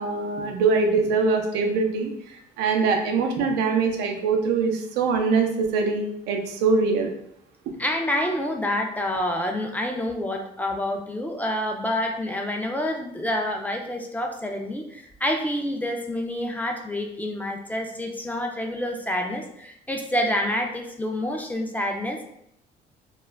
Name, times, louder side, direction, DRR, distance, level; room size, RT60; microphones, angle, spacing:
voice 1, 0.0-2.1 2.6-7.1, right 4 dB, 85° right, 3 dB, 0.5 m, -23 dB
voice 2, 7.8-22.2, left 1 dB, 10° left, 2 dB, 0.3 m, -28 dB
2.3 x 2.1 x 3.2 m, 0.72 s
cardioid pair, 110°, 17 cm